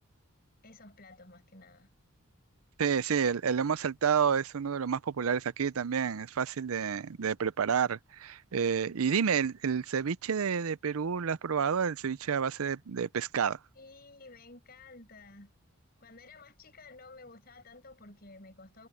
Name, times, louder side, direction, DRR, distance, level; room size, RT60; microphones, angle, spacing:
voice 1, 0.6-1.9 13.8-15.5 16.0-18.9, left 3 dB, 45° left, 6.1 m, -52 dB
voice 2, 2.8-13.6, right 7 dB, 85° right, 0.5 m, -29 dB
head